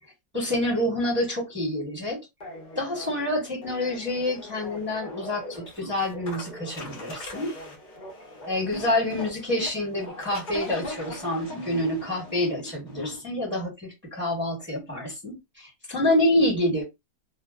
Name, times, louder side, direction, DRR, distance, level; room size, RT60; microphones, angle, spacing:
voice 1, 0.3-2.2 2.8-7.6 8.5-16.8, left 1 dB, 10° right, 0.8 m, -27 dB
sound 1, 2.4-13.2, left 1 dB, 45° left, 0.6 m, -40 dB
2.8 x 2.1 x 2.3 m
omnidirectional pair, 1.7 m